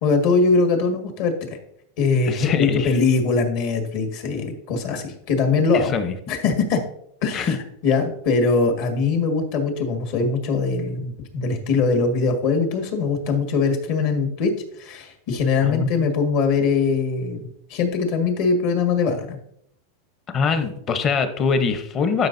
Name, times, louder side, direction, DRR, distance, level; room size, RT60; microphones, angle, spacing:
voice 1, 0.0-1.5 2.0-5.9 6.3-6.8 7.2-7.6 7.8-14.5 14.8-19.4, left 4 dB, 55° left, 4 dB, 1.7 m, -21 dB
voice 2, 2.2-2.9 5.7-6.1 7.3-7.6 15.6-15.9 20.3-22.3, left 5 dB, 30° left, 9 dB, 0.9 m, -23 dB
12.0 x 5.2 x 2.7 m, 0.72 s
supercardioid pair, 140°, 0 cm